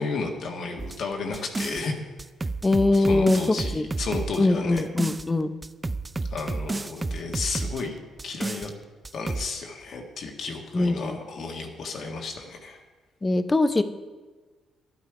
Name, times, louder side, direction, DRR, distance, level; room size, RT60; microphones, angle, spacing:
voice 1, 0.0-2.0 2.9-4.9 6.3-8.7 9.1-12.8, left 4 dB, 65° left, 2 dB, 1.6 m, -33 dB
sound 1, 0.8-1.8 2.2-5.3 5.6-7.8 8.2-8.7 9.0-9.5, right 3 dB, 20° right, 0.4 m, -31 dB
voice 2, 2.6-3.4 3.7-3.8 4.4-5.5 10.7-11.2 13.2-13.8, left 2 dB, 20° left, 11 dB, 0.6 m, -22 dB
12.0 x 8.4 x 4.9 m, 1.3 s
cardioid pair, 90°, 0 cm